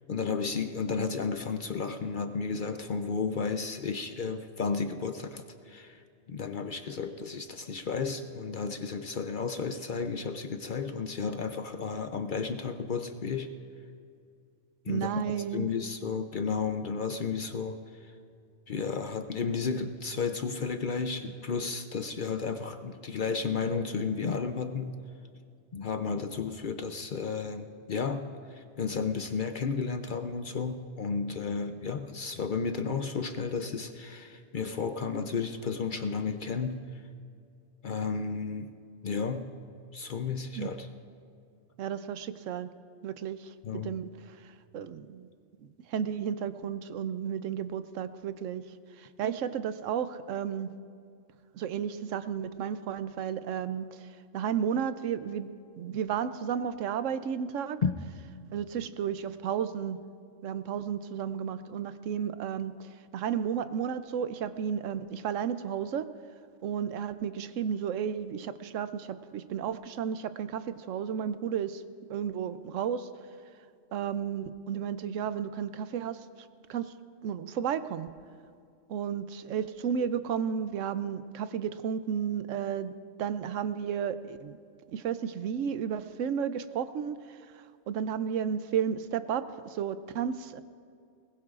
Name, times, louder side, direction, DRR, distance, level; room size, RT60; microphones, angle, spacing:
voice 1, 0.1-6.0 6.3-13.5 14.9-15.1 15.5-18.1 18.7-25.0 25.7-36.8 37.8-38.7 39.0-39.5 39.9-40.9 43.6-43.9 57.8-57.9, left 5 dB, 55° left, 8 dB, 0.6 m, -33 dB
voice 2, 14.9-15.7 40.5-40.9 41.8-42.7 43.0-45.3 45.6-48.6 49.0-50.7 51.5-55.5 55.8-57.8 58.5-60.0 60.4-66.1 66.6-71.8 72.1-73.1 73.9-76.3 76.7-76.9 77.2-78.1 78.9-82.9 83.2-84.6 84.9-90.6, right 8 dB, 80° right, 12 dB, 1.0 m, -33 dB
20.5 x 20.0 x 2.5 m, 2.3 s
omnidirectional pair, 1.3 m